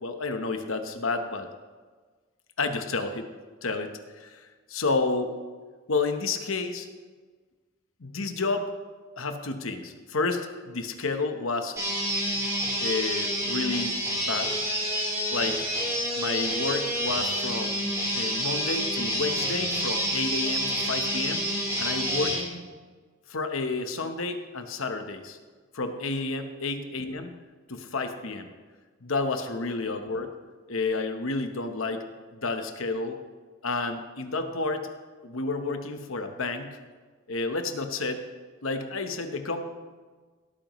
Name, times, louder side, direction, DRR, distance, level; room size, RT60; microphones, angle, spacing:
voice 1, 0.0-1.5 2.6-3.3 3.6-5.3 5.9-6.9 8.0-8.7 9.2-11.8 12.8-14.0 14.3-14.5 15.3-15.6 16.2-17.8 18.1-21.5 21.8-22.4 23.3-25.4 25.7-27.3 27.7-28.5 29.0-30.3 30.7-32.0 32.3-33.2 33.6-34.9 35.2-36.8 37.3-38.2 38.6-39.7, left 3 dB, 75° left, 7 dB, 1.0 m, -30 dB
sound 1, 11.8-22.4, equal, 15° right, 3.8 m, -28 dB
17.0 x 8.9 x 3.1 m, 1.4 s
head